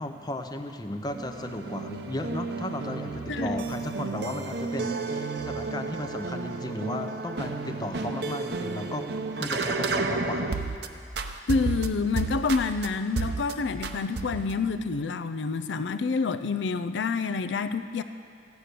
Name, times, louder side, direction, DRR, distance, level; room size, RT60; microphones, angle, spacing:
voice 1, 0.0-10.6, left 1 dB, 20° left, 6 dB, 0.6 m, -35 dB
sound 1, 1.1-10.9 11.2-12.9 13.2-13.5 13.8-14.6, right 3 dB, 60° right, 0.7 m, -32 dB
voice 2, 3.3-3.6 11.5-18.0, left 4 dB, 70° left, 11 dB, 0.4 m, -28 dB
15.0 x 9.3 x 6.7 m, 2.4 s
head